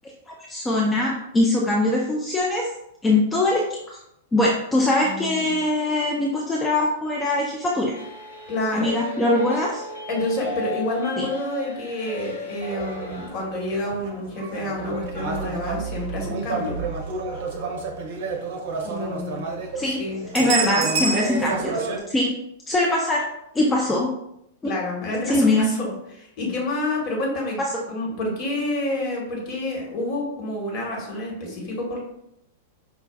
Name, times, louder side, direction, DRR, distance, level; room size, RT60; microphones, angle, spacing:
voice 1, 0.3-2.7 3.0-4.0 4.3-8.0 8.7-9.8 11.2-11.3 19.7-20.0 20.3-21.8 22.1-22.3 22.7-23.3 23.5-24.1 24.6-24.7 25.2-25.7 27.6-27.7, left 2 dB, 15° left, -2 dB, 0.5 m, -22 dB
voice 2, 5.0-5.5 8.5-8.9 10.1-16.8 18.8-19.4 19.8-20.2 20.5-20.8 24.6-27.6 27.9-32.0, left 1 dB, 40° left, -1 dB, 1.3 m, -28 dB
sound 1, 7.9-13.3, left 4 dB, 75° left, 0.8 m, -36 dB
sound 2, 12.6-22.0, right 4 dB, 60° right, 0.6 m, -29 dB
5.1 x 2.3 x 2.3 m, 0.79 s
figure-of-eight pair, 95°, 0 cm